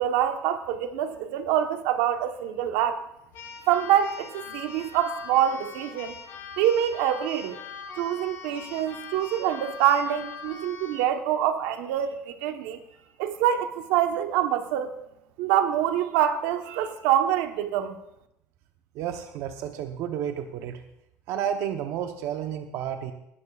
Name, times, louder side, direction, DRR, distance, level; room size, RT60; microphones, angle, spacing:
voice 1, 0.0-3.0 3.7-6.2 6.6-7.6 8.0-12.8 13.2-15.0 15.4-18.0, right 10 dB, 85° right, 7 dB, 1.1 m, -25 dB
Keyboard (musical), 3.3-11.1, left 5 dB, 55° left, 4.3 m, -42 dB
voice 2, 18.9-20.8 21.3-23.1, right 9 dB, 65° right, 6 dB, 0.9 m, -31 dB
19.5 x 12.5 x 2.4 m, 0.80 s
cardioid pair, 135°, 5 cm